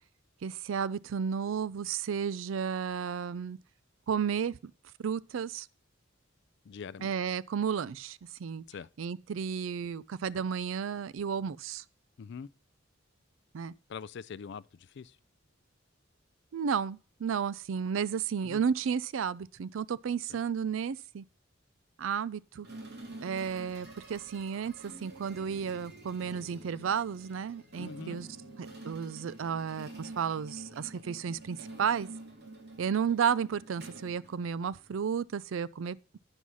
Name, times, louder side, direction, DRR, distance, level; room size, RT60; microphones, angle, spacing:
voice 1, 0.4-3.6 4.1-4.6 5.0-5.7 7.0-8.6 9.0-11.8 13.5-13.7 16.5-21.2 22.0-22.7 23.2-28.3 28.8-32.1 32.8-36.0, right 7 dB, 80° right, 0.4 m, -32 dB
voice 2, 6.6-7.1 8.7-8.9 12.2-12.5 13.9-15.2 18.4-18.6 20.3-20.4 27.8-28.2, left 6 dB, 60° left, 0.4 m, -43 dB
sound 1, 22.6-34.9, right 2 dB, 60° right, 2.4 m, -48 dB
9.9 x 5.5 x 6.2 m
head